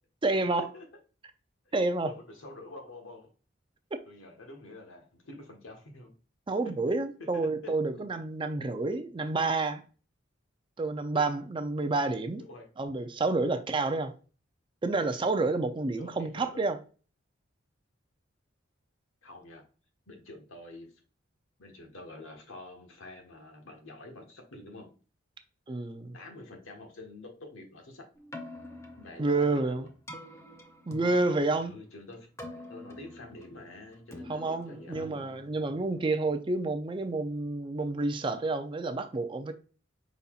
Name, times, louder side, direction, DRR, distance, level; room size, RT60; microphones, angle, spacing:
voice 1, 0.2-0.7 1.7-2.1 6.5-9.8 10.8-12.4 12.8-14.1 14.8-16.8 25.7-26.2 29.2-29.9 30.9-31.7 34.3-39.5, right 3 dB, 25° right, 0.4 m, -29 dB
voice 2, 2.0-3.3 4.0-6.1 6.6-6.8 7.3-7.7 12.5-12.7 16.0-16.6 19.2-19.6 20.1-20.9 21.6-24.9 26.1-28.1 28.9-29.9 31.6-35.2, left 2 dB, 80° left, 1.4 m, -47 dB
Keyboard (musical), 28.2-36.3, left 1 dB, 15° left, 0.7 m, -47 dB
5.4 x 4.1 x 2.4 m
head